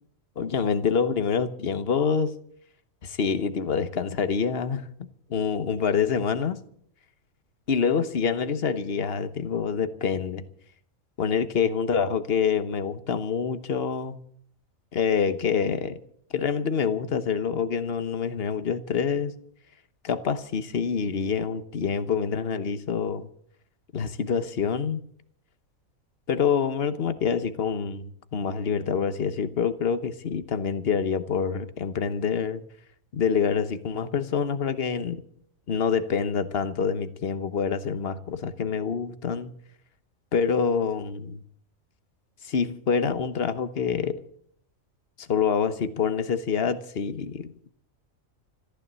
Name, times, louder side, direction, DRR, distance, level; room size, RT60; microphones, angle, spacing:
voice 1, 0.4-2.3 3.0-4.9 5.3-6.6 7.7-10.4 11.2-14.2 14.9-16.0 16.3-19.3 20.0-23.3 23.9-25.0 26.3-32.6 33.1-35.2 35.7-39.5 40.3-41.4 42.4-44.2 45.2-47.7, left 6 dB, 50° left, 1.2 m, -26 dB
14.0 x 12.5 x 7.6 m
omnidirectional pair, 1.4 m